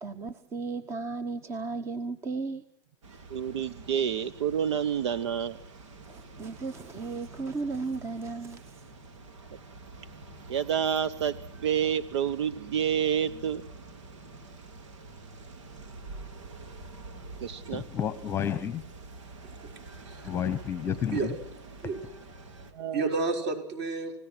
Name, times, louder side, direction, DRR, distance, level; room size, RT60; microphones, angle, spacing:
voice 1, 0.0-2.6 6.0-8.8, right 4 dB, 15° right, 13 dB, 1.0 m, -35 dB
sound 1, 3.0-22.7, right 3 dB, 85° right, 4.5 m, -47 dB
voice 2, 3.3-5.6 10.5-11.4 11.6-13.6 17.4-17.9 22.7-23.1, right 8 dB, 65° right, 16 dB, 1.0 m, -28 dB
voice 3, 17.7-18.8 20.2-21.2, left 9 dB, 15° left, 15 dB, 1.1 m, -30 dB
voice 4, 20.8-21.3 21.8-22.0 22.9-24.1, right 3 dB, 45° right, 5 dB, 5.8 m, -31 dB
30.0 x 17.5 x 6.2 m, 0.72 s
supercardioid pair, 155°, 15 cm